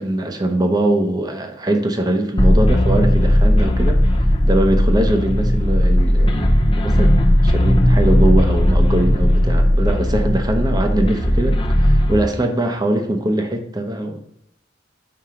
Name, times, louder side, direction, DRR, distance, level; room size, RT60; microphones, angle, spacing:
voice 1, 0.0-4.0 4.4-14.2, right 1 dB, 20° right, 5 dB, 0.9 m, -21 dB
sound 1, 2.4-12.2, equal, 30° left, 0.8 m, -16 dB
5.8 x 4.5 x 5.0 m, 0.74 s
head